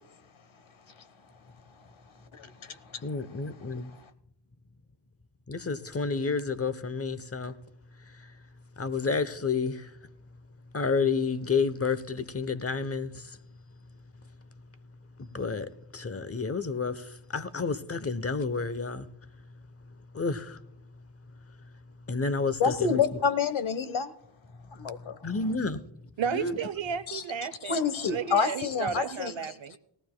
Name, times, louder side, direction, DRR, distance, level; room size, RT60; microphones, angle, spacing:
voice 1, 2.3-3.0 22.6-24.1 24.7-25.2 27.1-27.2 27.6-29.3, left 6 dB, 70° left, 1.2 m, -28 dB
voice 2, 3.0-3.9 5.5-7.5 8.2-8.3 8.8-9.9 10.7-13.4 15.2-19.1 20.1-20.6 22.1-23.0 25.2-25.8 26.3-26.6, left 4 dB, 30° left, 0.8 m, -30 dB
voice 3, 26.2-27.8 28.1-29.8, right 7 dB, 65° right, 0.8 m, -33 dB
18.5 x 14.0 x 2.2 m
cardioid pair, 70°, 50 cm